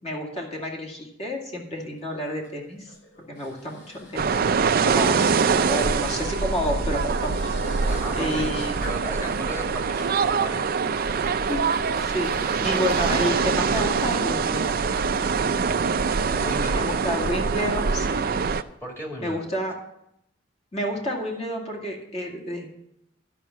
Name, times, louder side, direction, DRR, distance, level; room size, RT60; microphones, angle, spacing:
voice 1, 0.0-2.8 3.3-4.4 4.8-5.3 5.7-7.3 8.1-8.8 11.5-12.3 12.6-14.7 16.7-18.2 19.2-19.8 20.7-22.7, equal, 35° left, 0 dB, 2.3 m, -30 dB
sound 1, 1.8-15.5, left 2 dB, 75° left, 3.5 m, -45 dB
sound 2, 4.2-18.6, right 5 dB, 50° right, 0.4 m, -24 dB
voice 2, 7.8-8.4 8.8-10.8 16.4-16.9 18.8-19.4, equal, 15° left, 0 dB, 2.1 m, -35 dB
12.0 x 5.8 x 7.3 m, 0.80 s
head